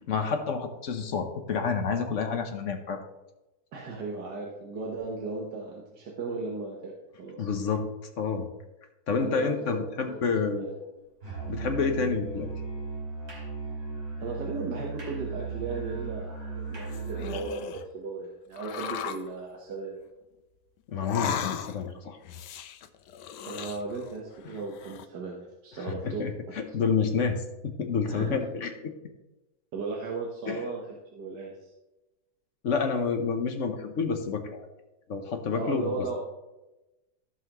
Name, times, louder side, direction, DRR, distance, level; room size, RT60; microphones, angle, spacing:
voice 1, 0.1-3.0 7.4-7.9 8.2-8.5 9.1-10.8 11.5-12.5 20.9-22.2 25.8-28.9 30.5-30.6 32.6-34.7 35.1-35.9, left 5 dB, 50° left, 5 dB, 1.2 m, -29 dB
voice 2, 3.7-6.9 7.2-7.5 9.2-10.2 10.5-10.7 14.2-20.0 23.4-26.3 28.1-28.4 29.7-31.7 35.6-36.2, right 3 dB, 80° right, -2 dB, 1.9 m, -36 dB
Musical instrument, 11.2-17.5, right 4 dB, 55° right, 3.3 m, -36 dB
sound 1, 16.7-17.9 18.6-19.3 20.9-21.9 22.2-24.2 24.5-25.0, left 8 dB, 85° left, 1.3 m, -36 dB
15.5 x 5.6 x 3.1 m, 1.0 s
omnidirectional pair, 1.8 m